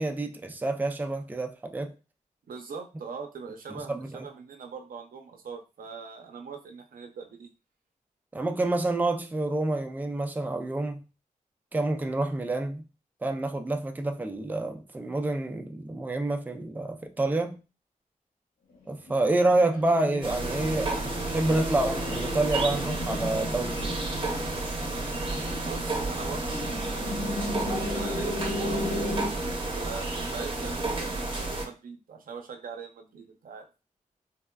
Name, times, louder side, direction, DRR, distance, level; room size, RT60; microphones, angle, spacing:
voice 1, 0.0-1.9 3.7-4.1 8.3-11.0 11.7-12.8 13.2-17.6 18.9-24.0, right 2 dB, 10° right, 0.4 m, -28 dB
voice 2, 2.5-7.5 25.6-29.2 29.8-33.6, right 5 dB, 80° right, 0.5 m, -41 dB
sound 1, 19.1-29.3, left 2 dB, 75° left, 0.8 m, -35 dB
sound 2, 20.2-31.7, right 2 dB, 35° right, 0.7 m, -31 dB
3.4 x 2.2 x 2.2 m
wide cardioid pair, 75°, 14 cm